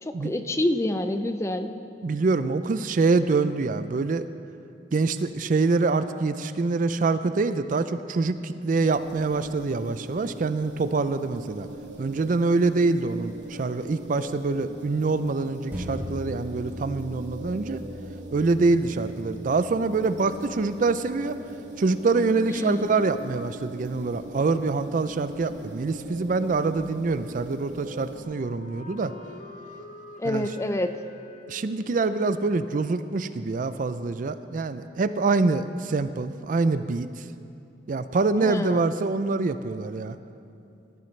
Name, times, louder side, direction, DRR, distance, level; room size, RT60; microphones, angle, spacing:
voice 1, 0.0-1.7 22.5-22.9 30.2-31.0 38.4-38.9, left 1 dB, 15° left, 8 dB, 0.4 m, -27 dB
voice 2, 2.0-4.2 4.9-11.7 12.0-17.8 18.3-21.4 21.8-29.1 30.2-30.5 31.5-37.1 37.9-40.2, right 3 dB, 45° right, 12 dB, 0.4 m, -25 dB
sound 1, 8.9-28.2, right 1 dB, 85° right, 2.2 m, -41 dB
sound 2, 15.7-24.5 25.0-25.1, equal, 10° right, 2.6 m, -42 dB
Wind instrument woodwind instrument, 27.6-34.4, left 2 dB, 40° left, 0.9 m, -48 dB
17.5 x 13.5 x 3.2 m, 2.6 s
head